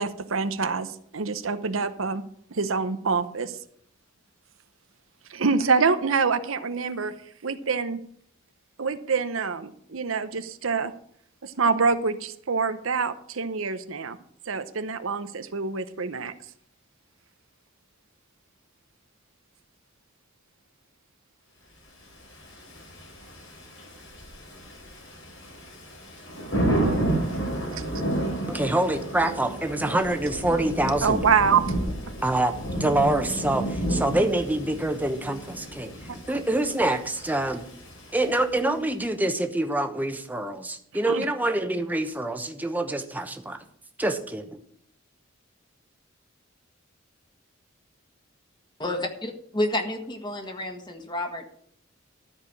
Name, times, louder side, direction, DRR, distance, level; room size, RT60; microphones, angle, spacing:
voice 1, 0.0-2.2 2.5-3.6 5.3-7.1 7.4-8.0 8.8-10.9 11.4-14.2 14.5-16.3 27.7-27.8 31.0-31.6 41.1-41.2, right 5 dB, 85° right, 11 dB, 0.8 m, -26 dB
Thunder / Rain, 22.2-38.8, right 1 dB, 75° left, 4.3 m, -31 dB
voice 2, 28.5-31.2 32.2-35.9 36.3-37.6 38.1-43.6 44.0-44.5, right 1 dB, 10° right, 6 dB, 1.0 m, -26 dB
voice 3, 48.8-51.5, left 1 dB, 20° left, 4 dB, 1.6 m, -30 dB
13.5 x 4.8 x 8.4 m, 0.65 s
head